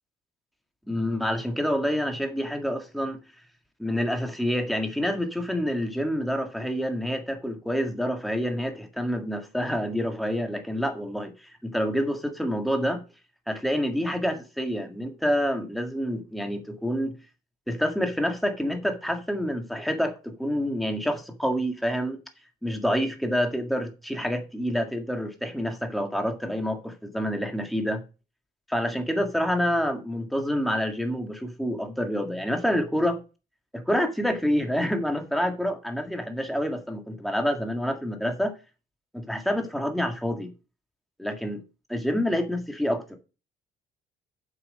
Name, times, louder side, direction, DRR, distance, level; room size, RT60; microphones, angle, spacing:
voice 1, 0.9-3.2 3.8-13.0 13.5-17.1 17.7-22.2 22.6-28.0 28.7-33.2 33.7-38.5 39.1-40.5 41.2-41.6 41.9-43.2, equal, ahead, 1.8 m, -27 dB
7.8 x 5.9 x 6.4 m
cardioid pair, 110°, 17 cm